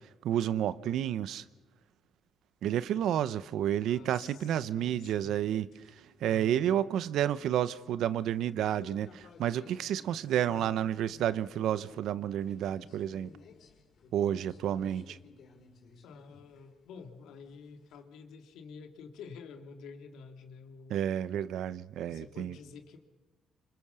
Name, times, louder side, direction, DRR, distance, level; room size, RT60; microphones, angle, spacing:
voice 1, 0.0-1.4 2.6-13.3 14.1-15.2 20.9-22.5, right 10 dB, 80° right, 0.9 m, -31 dB
sound 1, 3.8-4.2 5.7-6.1 8.3-17.0 17.5-18.0, left 5 dB, 70° left, 5.1 m, -56 dB
voice 2, 3.9-5.4 6.2-6.6 10.5-10.7 16.0-21.0 22.0-23.0, left 5 dB, 85° left, 2.6 m, -49 dB
26.5 x 25.5 x 6.9 m
cardioid pair, 90°, 0 cm